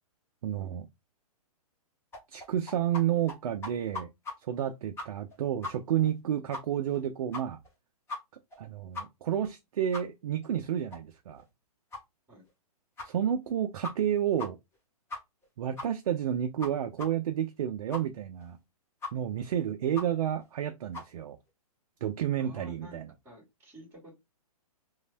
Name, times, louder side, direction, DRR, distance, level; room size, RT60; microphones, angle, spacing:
voice 1, 0.4-0.9 2.3-4.1 4.5-7.6 8.6-11.4 13.0-14.6 15.6-18.6 19.1-21.4 22.0-23.1, right 10 dB, 60° right, 0.4 m, -30 dB
sound 1, 2.1-3.0 3.3-3.4 3.6-4.3 4.6-4.7 5.0-5.3 5.6-5.7 6.0-6.1 6.5-6.6 6.9-7.0 7.3-7.7 8.1-8.2 8.5-8.6 8.9-9.0 9.4-9.5 9.9-10.0 10.4-10.5 10.9-11.0 11.4-11.5 11.9-12.0 12.5-12.6 13.0-13.1 13.5-13.6 13.8-14.1 14.4-14.5 14.7-14.8 15.1-15.4 15.8-15.9 16.2-16.3 16.6-16.7 17.0-17.1 17.4-17.5 17.9-18.0 18.4-18.5 19.0-19.1 19.4-19.5 19.9-20.0 20.4-20.5 20.9-21.1, left 3 dB, 10° left, 0.9 m, -38 dB
voice 2, 22.3-24.2, equal, 10° right, 1.7 m, -51 dB
3.1 x 2.1 x 2.5 m
hypercardioid pair, 125°, 20 cm